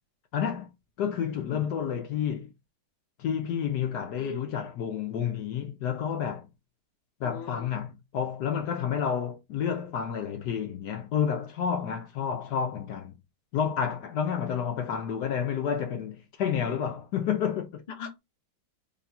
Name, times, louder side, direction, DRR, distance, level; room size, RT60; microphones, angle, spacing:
voice 1, 0.3-0.7 1.0-2.5 3.2-6.5 7.2-13.2 13.5-17.8, left 8 dB, 70° left, 1.0 m, -30 dB
voice 2, 4.1-4.5 7.2-7.7 18.0-18.2, left 5 dB, 35° left, 0.7 m, -41 dB
3.4 x 2.3 x 4.0 m
omnidirectional pair, 2.3 m